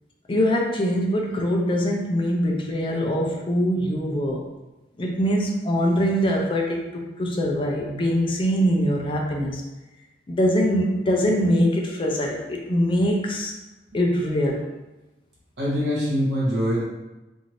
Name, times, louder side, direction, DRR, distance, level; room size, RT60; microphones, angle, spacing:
voice 1, 0.3-4.5 5.0-9.6 10.3-13.5 13.9-14.7, equal, 30° left, 0 dB, 0.4 m, -23 dB
voice 2, 15.6-16.8, equal, 80° right, -6 dB, 1.2 m, -23 dB
2.6 x 2.6 x 3.1 m, 1.1 s
head